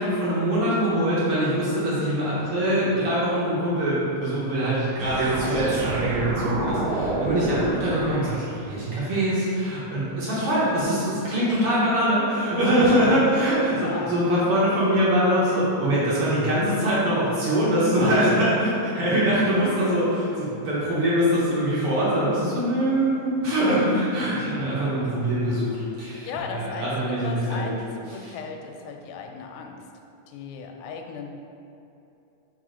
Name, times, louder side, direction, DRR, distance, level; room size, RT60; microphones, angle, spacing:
voice 1, 0.0-27.8 28.1-28.3, equal, 60° right, -8 dB, 1.8 m, -23 dB
sound 1, 5.0-8.9, right 2 dB, 80° right, 1.5 m, -28 dB
voice 2, 13.8-14.1 26.2-29.8 30.3-31.3, left 5 dB, 90° left, 3 dB, 2.1 m, -36 dB
4.7 x 4.1 x 4.9 m, 2.8 s
omnidirectional pair, 3.5 m